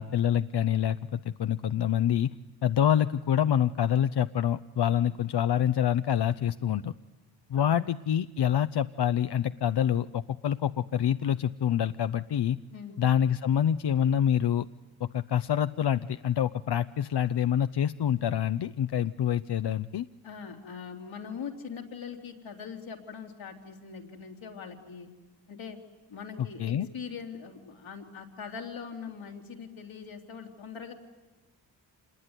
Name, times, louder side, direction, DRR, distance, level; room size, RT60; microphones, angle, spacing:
voice 1, 0.0-2.3 2.6-6.9 7.5-12.6 13.0-14.7 15.0-20.1 26.6-26.9, left 9 dB, 60° left, 12 dB, 0.7 m, -26 dB
voice 2, 20.2-25.1 25.5-25.8 26.1-30.9, left 6 dB, 80° left, 1 dB, 3.5 m, -42 dB
26.5 x 20.5 x 9.8 m, 1.2 s
supercardioid pair, 40°, 46 cm